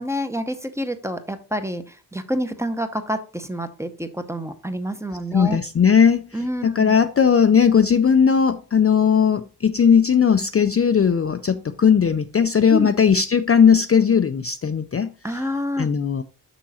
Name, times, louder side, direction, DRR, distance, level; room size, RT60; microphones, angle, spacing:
voice 1, 0.0-5.6 6.3-6.9 12.7-12.9 15.2-15.9, equal, 5° right, 0.7 m, -28 dB
voice 2, 5.3-15.4 15.8-16.2, left 7 dB, 35° left, 0.4 m, -18 dB
6.2 x 5.9 x 4.1 m
wide cardioid pair, 115°, 40 cm